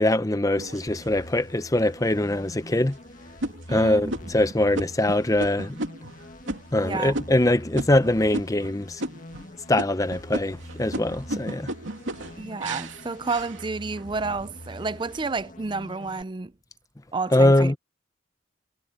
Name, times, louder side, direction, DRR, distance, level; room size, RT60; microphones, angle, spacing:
voice 1, 0.0-3.0 3.7-5.8 6.7-9.0 9.7-11.7 17.3-17.8, left 1 dB, 15° left, 0.7 m, -22 dB
sound 1, 0.6-1.4 2.0-2.1 2.6-2.9 3.4-8.7 9.0-9.5 9.8-14.1 14.6-15.1, right 1 dB, 85° right, 2.8 m, -35 dB
sound 2, 0.9-16.2, left 1 dB, 45° left, 2.0 m, -44 dB
voice 2, 3.7-4.1 6.8-7.2 12.4-16.5 17.1-17.7, right 3 dB, 25° right, 0.4 m, -30 dB
head